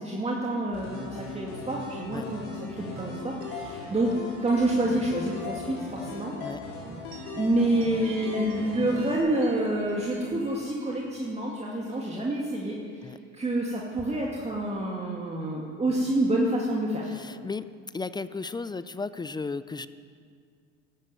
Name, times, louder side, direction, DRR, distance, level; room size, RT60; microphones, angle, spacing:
voice 1, 0.0-6.3 7.3-17.1, right 1 dB, 15° right, -2 dB, 2.2 m, -28 dB
sound 1, 0.7-9.2, left 3 dB, 75° left, 4.5 m, -39 dB
sound 2, 3.0-12.7, right 3 dB, 65° right, 2.4 m, -48 dB
voice 2, 17.1-17.7 17.9-19.9, left 4 dB, 10° left, 14 dB, 0.4 m, -34 dB
13.0 x 12.0 x 7.9 m, 2.2 s
hypercardioid pair, 90°, 36 cm